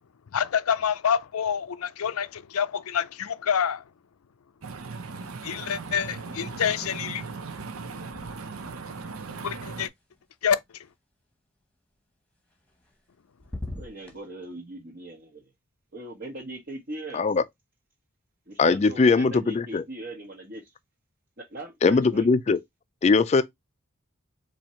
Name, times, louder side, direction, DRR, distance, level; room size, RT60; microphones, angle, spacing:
voice 1, 0.3-3.8 5.4-7.2 9.4-9.9 10.4-10.6, left 7 dB, 90° left, 0.5 m, -27 dB
sound 1, 4.6-9.9, right 4 dB, 80° right, 0.7 m, -38 dB
sound 2, 5.8-6.5 6.8-10.9 12.5-13.1 13.4-14.2, left 1 dB, 5° left, 1.0 m, -44 dB
voice 2, 13.8-15.4 15.9-17.2 18.5-20.7 21.5-22.3, right 1 dB, 50° right, 1.1 m, -40 dB
voice 3, 18.6-19.8 21.8-22.6 23.0-23.4, left 4 dB, 30° left, 0.3 m, -20 dB
4.4 x 2.8 x 4.2 m
head